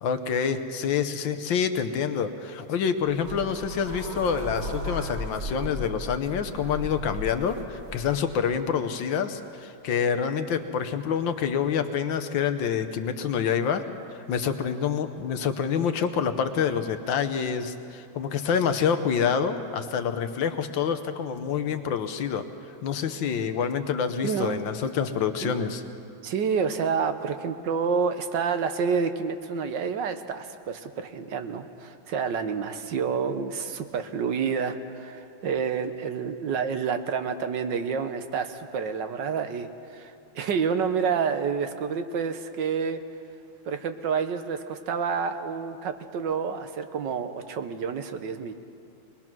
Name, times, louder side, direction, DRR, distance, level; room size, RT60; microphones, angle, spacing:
voice 1, 0.0-13.8 14.3-22.4 22.8-25.8, left 7 dB, 70° left, 9 dB, 1.6 m, -27 dB
sound 1, 3.0-8.2, equal, 30° right, 1.9 m, -36 dB
voice 2, 24.2-24.6 25.4-25.7 26.2-43.0 43.7-48.5, right 6 dB, 65° right, 8 dB, 1.4 m, -29 dB
22.5 x 20.5 x 6.1 m, 2.5 s
omnidirectional pair, 2.3 m